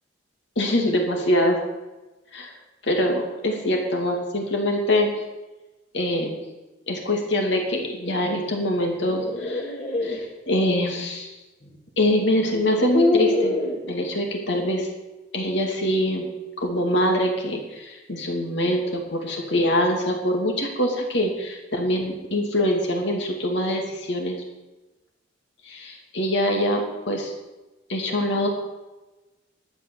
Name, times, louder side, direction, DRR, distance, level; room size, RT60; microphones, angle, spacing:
voice 1, 0.6-1.5 2.3-2.5 2.8-5.1 5.9-6.4 6.9-9.7 10.0-11.3 12.0-13.6 13.8-14.9 15.3-16.3 16.6-24.4 25.6-27.3 27.9-28.5, left 1 dB, 65° left, 1 dB, 2.8 m, -24 dB
sound 1, 8.8-10.2 11.6-11.7 12.4-13.8, left 2 dB, 40° left, 2.7 m, -24 dB
12.0 x 9.2 x 7.3 m, 1.1 s
head